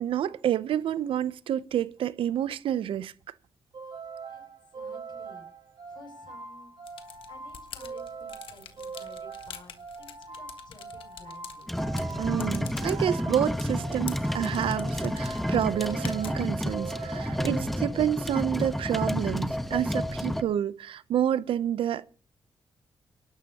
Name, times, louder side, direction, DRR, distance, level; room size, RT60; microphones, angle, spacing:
voice 1, 0.0-3.1 12.2-22.1, right 10 dB, 80° right, 0.6 m, -29 dB
sound 1, 3.7-18.3, right 4 dB, 55° right, 5.7 m, -42 dB
voice 2, 4.7-5.5 5.8-6.7 7.0-11.7, left 2 dB, 55° left, 7.0 m, -53 dB
sound 2, 6.9-16.6, left 8 dB, 75° left, 1.5 m, -47 dB
sound 3, 11.7-20.4, equal, ahead, 1.1 m, -30 dB
29.5 x 12.0 x 2.9 m
cardioid pair, 70°, 9 cm